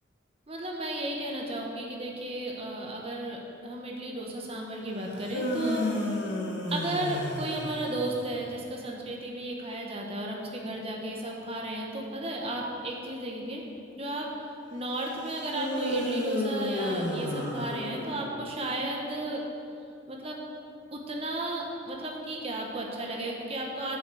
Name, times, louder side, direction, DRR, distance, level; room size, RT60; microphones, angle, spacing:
voice 1, 0.5-5.8 6.7-13.6 13.9-14.3 14.7-19.4 20.1-20.4 20.9-24.0, right 1 dB, 30° right, -1 dB, 1.2 m, -34 dB
sound 1, 5.1-8.3 15.5-18.4, left 1 dB, 65° left, 1.5 m, -32 dB
8.4 x 6.2 x 6.4 m, 2.6 s
head